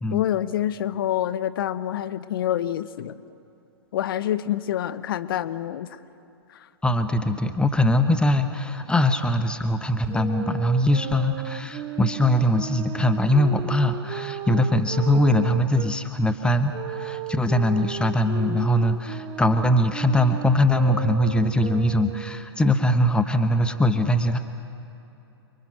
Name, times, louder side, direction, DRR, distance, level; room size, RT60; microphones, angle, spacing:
voice 1, 0.1-3.2 3.9-6.0 6.5-6.7, left 11 dB, 55° left, 14 dB, 0.9 m, -27 dB
voice 2, 6.8-24.4, left 1 dB, 5° left, 8 dB, 1.0 m, -22 dB
Wind instrument woodwind instrument, 10.1-15.9 16.7-22.5, right 11 dB, 30° right, 1.0 m, -36 dB
29.5 x 22.5 x 6.2 m, 3.0 s
figure-of-eight pair, 110°, 14 cm